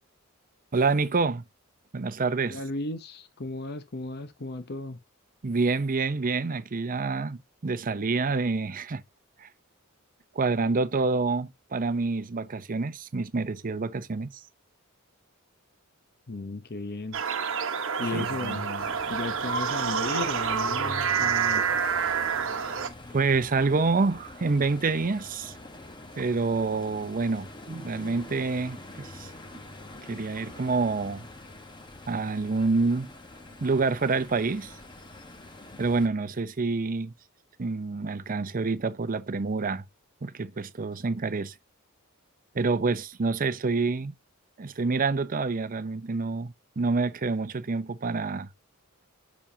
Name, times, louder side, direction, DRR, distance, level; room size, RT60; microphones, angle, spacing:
voice 1, 0.7-1.4 1.9-2.6 5.4-9.0 9.4-9.5 10.3-14.3 18.1-18.6 23.1-25.6 26.1-29.3 30.0-31.3 32.1-33.1 33.6-34.7 35.8-37.1 37.6-39.8 40.2-41.5 42.5-44.1 44.6-48.5, right 4 dB, 40° right, 0.6 m, -27 dB
voice 2, 2.4-5.0 16.3-17.2 18.0-21.8, left 3 dB, 50° left, 0.7 m, -35 dB
sound 1, 17.1-22.9, right 6 dB, 65° right, 1.0 m, -28 dB
sound 2, 18.8-36.1, left 2 dB, 20° left, 1.1 m, -45 dB
7.1 x 7.0 x 2.7 m
head